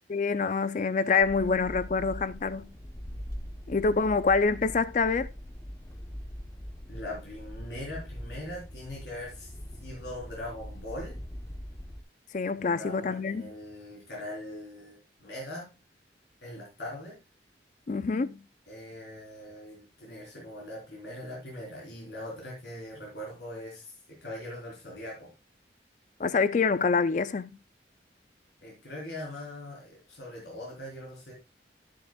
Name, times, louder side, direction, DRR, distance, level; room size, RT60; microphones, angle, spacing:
voice 1, 0.1-2.7 3.7-5.3 12.3-13.5 17.9-18.4 26.2-27.5, left 4 dB, 40° left, 0.4 m, -26 dB
sound 1, 1.2-12.0, equal, 15° left, 0.8 m, -42 dB
voice 2, 6.9-9.5 9.8-11.2 12.6-15.7 16.4-17.2 18.7-25.3 28.6-31.3, left 1 dB, 70° left, 3.6 m, -41 dB
10.0 x 9.5 x 2.3 m
head